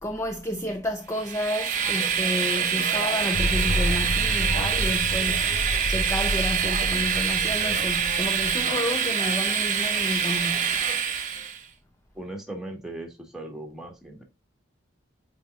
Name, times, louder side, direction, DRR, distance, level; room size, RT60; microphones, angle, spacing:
voice 1, 0.0-5.6 5.9-10.8, left 1 dB, 15° left, 0.6 m, -31 dB
Train, 1.1-11.6, right 7 dB, 40° right, 1.1 m, -25 dB
sound 1, 3.3-8.6, left 1 dB, 75° left, 1.5 m, -30 dB
voice 2, 12.1-14.2, right 1 dB, 5° right, 1.6 m, -38 dB
9.1 x 4.2 x 2.5 m
head